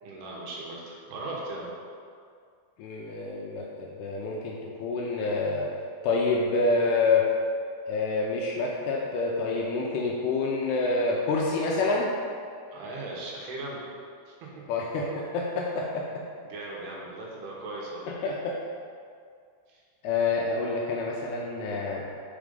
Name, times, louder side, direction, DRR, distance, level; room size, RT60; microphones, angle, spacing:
voice 1, 0.0-1.7 12.7-13.8 14.3-14.7 16.4-18.1 19.7-19.8, right 2 dB, 75° right, -4 dB, 3.0 m, -38 dB
voice 2, 2.8-5.7 6.0-7.3 7.9-12.1 14.7-16.2 18.1-18.6 20.0-22.0, left 3 dB, 85° left, -2 dB, 2.4 m, -27 dB
6.2 x 5.1 x 5.1 m, 2.2 s
omnidirectional pair, 5.0 m